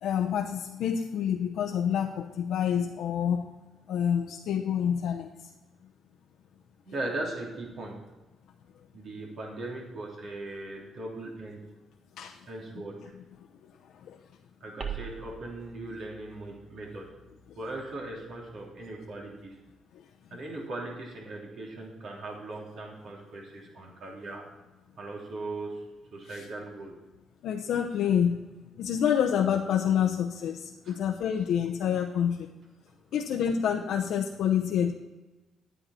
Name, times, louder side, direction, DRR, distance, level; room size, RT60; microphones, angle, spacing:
voice 1, 0.0-3.5 3.9-5.3 12.2-12.4 14.0-14.2 19.9-20.0 26.3-26.4 27.4-28.4 28.8-32.5 33.1-34.9, left 8 dB, 80° left, 1 dB, 0.7 m, -27 dB
voice 2, 6.8-8.0 8.9-11.7 12.5-13.1 14.6-17.1 17.5-19.6 20.3-24.4 24.9-26.9 30.8-31.0, right 2 dB, 60° right, -2 dB, 3.3 m, -39 dB
sound 1, 14.8-19.6, right 7 dB, 45° right, 1.5 m, -45 dB
11.0 x 9.4 x 4.3 m, 1.1 s
cardioid pair, 90°, 0 cm